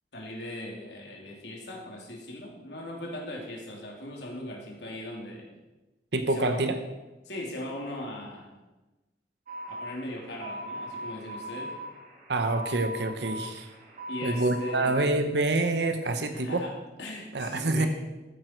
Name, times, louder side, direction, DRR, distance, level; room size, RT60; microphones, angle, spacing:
voice 1, 0.1-5.5 6.3-6.6 7.2-8.5 9.7-11.7 14.1-15.0 16.2-16.7 17.0-17.9, left 1 dB, 70° left, -1 dB, 3.1 m, -39 dB
voice 2, 6.1-6.7 12.3-13.7 14.2-16.7 17.3-17.9, right 2 dB, 70° right, 7 dB, 1.0 m, -26 dB
sound 1, 9.5-15.0, right 1 dB, 45° right, 2.1 m, -40 dB
14.0 x 9.5 x 4.6 m, 1.1 s
head